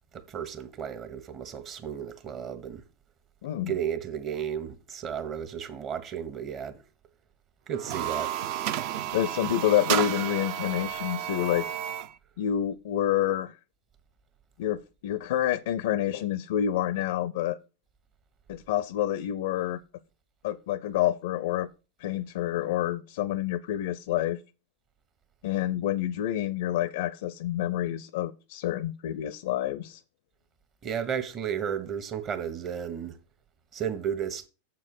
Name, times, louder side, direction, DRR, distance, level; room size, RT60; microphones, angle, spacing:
voice 1, 0.1-2.8 3.7-6.8 7.7-8.6 30.8-33.2 33.7-34.4, right 8 dB, 35° right, 1.3 m, -33 dB
voice 2, 3.4-3.7 9.1-11.7 12.4-13.5 14.6-17.6 18.5-19.8 20.4-21.7 22.0-24.4 25.4-30.0, left 11 dB, 65° left, 0.4 m, -28 dB
sound 1, 7.7-12.1, right 11 dB, 55° right, 0.6 m, -31 dB
7.0 x 4.5 x 6.5 m
hypercardioid pair, 100°, 0 cm